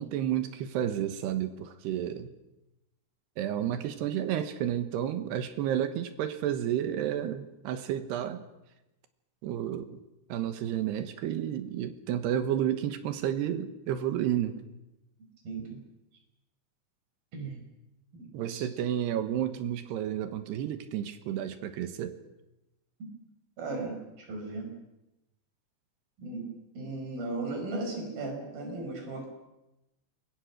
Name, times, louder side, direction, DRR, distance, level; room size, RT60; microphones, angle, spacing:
voice 1, 0.0-2.3 3.4-8.4 9.4-10.0 10.3-14.6 18.3-22.2, right 10 dB, 70° right, 9 dB, 2.9 m, -31 dB
voice 2, 15.5-15.8 17.3-17.6 18.2-18.7 23.6-24.7 26.2-29.3, right 2 dB, 50° right, 3 dB, 6.9 m, -37 dB
28.0 x 23.0 x 6.2 m, 0.93 s
omnidirectional pair, 5.7 m